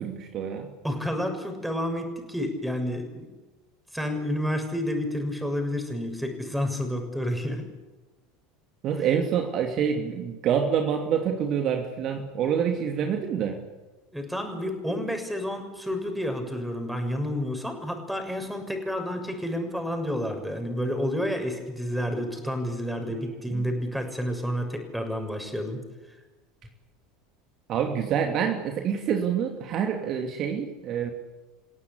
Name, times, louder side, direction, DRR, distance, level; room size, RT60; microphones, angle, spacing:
voice 1, 0.0-0.7 8.8-13.6 23.5-23.6 27.7-31.1, right 8 dB, 45° right, 4 dB, 2.8 m, -27 dB
voice 2, 0.8-3.3 3.9-7.6 14.1-25.8, equal, 5° right, 5 dB, 6.7 m, -30 dB
30.0 x 17.0 x 8.4 m, 1.2 s
figure-of-eight pair, 75°, 0 cm